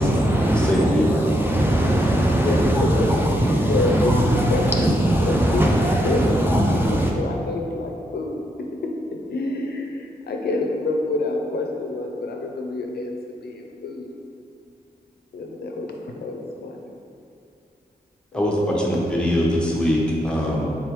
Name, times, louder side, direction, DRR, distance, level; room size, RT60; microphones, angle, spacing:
voice 1, 0.0-7.1, right 1 dB, 15° right, -2 dB, 0.3 m, -20 dB
voice 2, 0.5-1.3 18.3-20.7, equal, 5° left, -4 dB, 0.7 m, -22 dB
voice 3, 2.4-8.9 9.3-14.2 15.3-16.9 18.6-19.0, left 2 dB, 75° left, 2 dB, 0.4 m, -28 dB
3.7 x 3.2 x 3.0 m, 2.5 s
wide cardioid pair, 75°, 17 cm